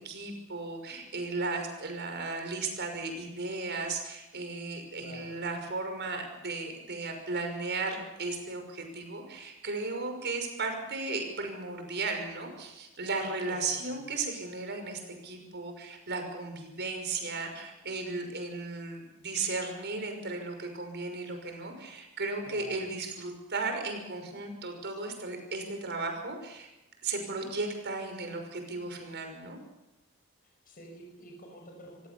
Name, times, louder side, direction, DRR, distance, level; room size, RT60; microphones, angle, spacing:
voice 1, 0.0-26.7 27.0-29.6, right 3 dB, 55° right, 5 dB, 5.9 m, -35 dB
voice 2, 5.0-5.4 13.5-14.0 22.4-22.9 30.6-32.1, equal, 40° left, 1 dB, 6.3 m, -48 dB
27.0 x 17.0 x 7.1 m, 0.98 s
head